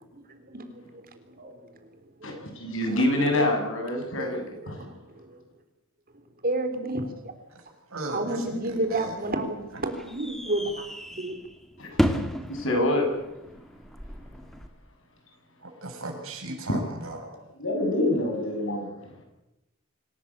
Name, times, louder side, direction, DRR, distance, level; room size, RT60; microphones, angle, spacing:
voice 1, 0.1-1.9 2.2-2.4 2.9-3.1 4.0-5.4 6.4-7.3 8.1-11.3, right 2 dB, 45° right, 7 dB, 3.6 m, -32 dB
voice 2, 2.2-4.8 11.8-13.1 16.7-16.8 17.3-19.2, left 1 dB, 65° left, 3 dB, 7.6 m, -27 dB
voice 3, 7.9-8.4 8.9-9.1 15.8-17.2, right 2 dB, 65° right, 3 dB, 7.0 m, -35 dB
sound 1, 8.7-14.7, equal, ahead, 2.2 m, -33 dB
26.0 x 18.0 x 8.7 m, 0.93 s
head